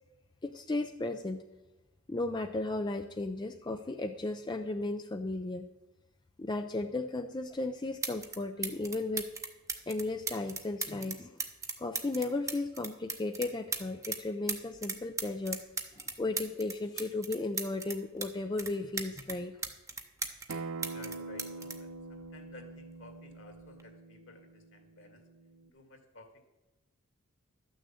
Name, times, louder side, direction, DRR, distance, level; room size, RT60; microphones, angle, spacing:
voice 1, 0.4-1.4 2.1-5.7 6.4-9.3 9.9-11.4 11.8-15.6 16.2-19.6, left 2 dB, 20° left, 5 dB, 0.4 m, -35 dB
sound 1, 7.5-7.6 8.0-8.4 8.6-14.2 14.5-18.3 18.6-20.6 20.8-22.7 23.6-23.8, right 4 dB, 15° right, 0.8 m, -37 dB
Acoustic guitar, 20.5-25.7, right 3 dB, 70° right, 0.6 m, -44 dB
voice 2, 20.9-25.2 25.7-26.5, left 2 dB, 55° left, 5 dB, 1.9 m, -54 dB
12.5 x 6.3 x 8.3 m, 1.0 s
head